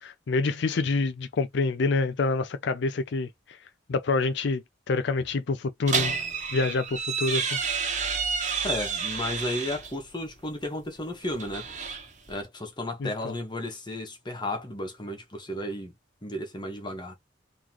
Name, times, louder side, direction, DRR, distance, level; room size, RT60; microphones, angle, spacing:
voice 1, 0.0-3.6 3.9-6.1 6.5-7.6 13.0-13.3, left 3 dB, 65° left, 0.4 m, -27 dB
sound 1, 5.9-9.9 11.2-12.4, right 6 dB, 40° right, 1.3 m, -30 dB
sound 2, 7.5-10.5, left 1 dB, ahead, 1.1 m, -46 dB
voice 2, 8.6-11.9 12.3-15.9 16.2-17.1, left 1 dB, 25° left, 1.3 m, -33 dB
3.8 x 3.1 x 2.9 m
head